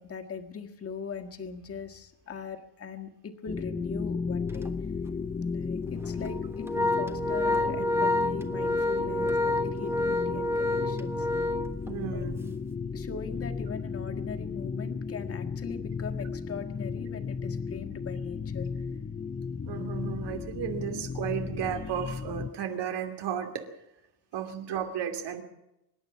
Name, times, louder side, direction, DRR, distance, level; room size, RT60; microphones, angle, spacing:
voice 1, 0.0-4.7 5.5-11.3 12.1-12.3 12.9-18.7, left 5 dB, 35° left, 5 dB, 1.7 m, -40 dB
sound 1, 3.5-22.5, left 5 dB, 20° left, 0.7 m, -34 dB
Organ, 4.5-4.7 5.1-5.2 6.0-12.3, left 2 dB, 5° right, 1.2 m, -28 dB
voice 2, 11.8-12.5 19.6-23.7 24.3-25.4, right 9 dB, 85° right, 5 dB, 2.9 m, -34 dB
25.0 x 11.0 x 9.5 m, 0.87 s
cardioid pair, 175°, 40 cm